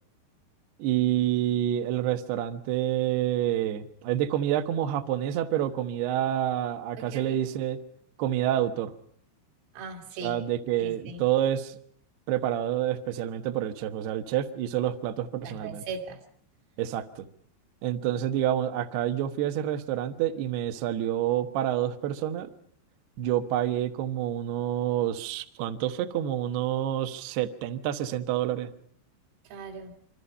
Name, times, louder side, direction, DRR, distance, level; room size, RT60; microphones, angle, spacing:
voice 1, 0.8-7.8 8.2-8.9 10.2-11.8 12.3-15.8 16.8-17.3 17.8-22.5 23.2-28.7, right 11 dB, 70° right, 7 dB, 2.8 m, -28 dB
voice 2, 7.0-7.4 9.8-10.4 10.8-11.2 15.5-16.2 29.5-29.9, right 4 dB, 90° right, 3 dB, 5.4 m, -39 dB
26.0 x 25.5 x 5.6 m, 0.64 s
omnidirectional pair, 5.8 m